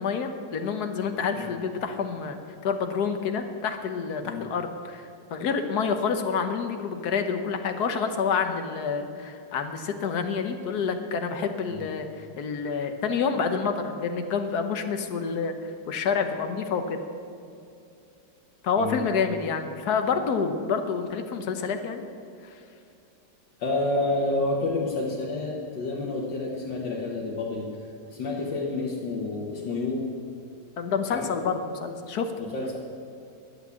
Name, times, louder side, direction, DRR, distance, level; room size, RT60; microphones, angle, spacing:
voice 1, 0.0-15.5 15.9-17.0 18.6-22.0 30.8-32.3, left 5 dB, 65° left, 7 dB, 1.4 m, -28 dB
voice 2, 23.6-27.7 28.1-30.1 31.1-31.3 32.4-32.8, left 2 dB, 80° left, -3 dB, 2.0 m, -29 dB
11.5 x 8.5 x 8.2 m, 2.5 s
omnidirectional pair, 1.9 m